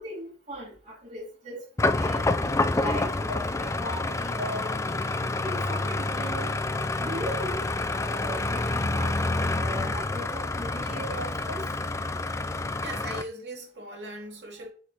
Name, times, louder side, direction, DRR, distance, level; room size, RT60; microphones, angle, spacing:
voice 1, 0.0-2.3 2.7-4.8 5.3-6.5 7.0-7.6 8.0-9.1 9.5-11.7, equal, 45° right, 3.1 m, -38 dB
sound 1, 1.8-13.2, left 2 dB, 15° left, 0.4 m, -28 dB
voice 2, 12.8-14.7, right 1 dB, 85° right, 2.5 m, -39 dB
8.5 x 4.8 x 2.9 m
head